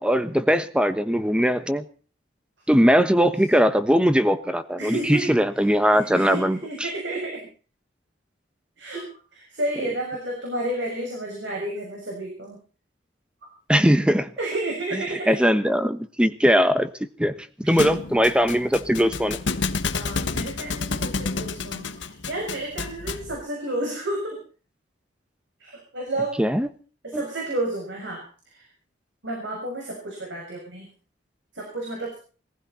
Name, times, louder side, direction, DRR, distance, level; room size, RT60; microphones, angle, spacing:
voice 1, 0.0-1.8 2.7-6.6 13.7-14.3 15.3-16.9 17.2-17.3 17.6-19.4 26.4-26.7 27.1-27.2, equal, 5° right, 11 dB, 1.2 m, -20 dB
voice 2, 4.8-5.2 5.9-7.4 8.8-9.0 9.3-12.6 14.4-15.4 17.6-17.8 18.1-18.2 19.9-24.4 25.6-26.4 27.0-28.7 29.2-30.9 31.5-32.2, right 1 dB, 70° right, -1 dB, 6.7 m, -31 dB
Thump thud, 17.8-23.4, left 4 dB, 75° left, 1.3 m, -29 dB
22.0 x 15.5 x 4.3 m, 0.40 s
head